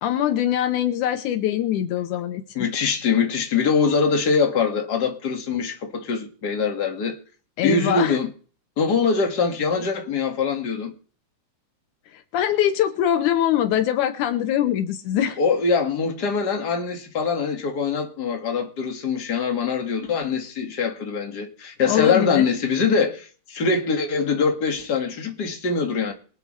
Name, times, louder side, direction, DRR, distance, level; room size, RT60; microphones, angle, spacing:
voice 1, 0.0-2.7 7.6-8.2 12.1-15.4 21.9-22.5, left 11 dB, 80° left, 2.2 m, -23 dB
voice 2, 2.5-7.2 7.6-8.3 8.8-10.9 15.4-26.1, left 5 dB, 35° left, 2.3 m, -23 dB
25.0 x 8.4 x 3.3 m
omnidirectional pair, 3.6 m